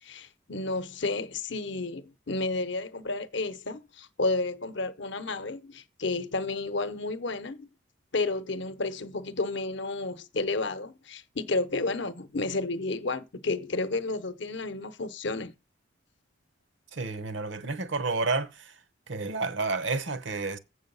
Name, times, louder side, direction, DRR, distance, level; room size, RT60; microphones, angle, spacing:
voice 1, 0.0-7.7 8.1-15.5, left 3 dB, 60° left, 0.8 m, -31 dB
voice 2, 16.9-18.7 19.1-20.6, right 3 dB, 65° right, 0.8 m, -30 dB
7.8 x 6.3 x 5.4 m
head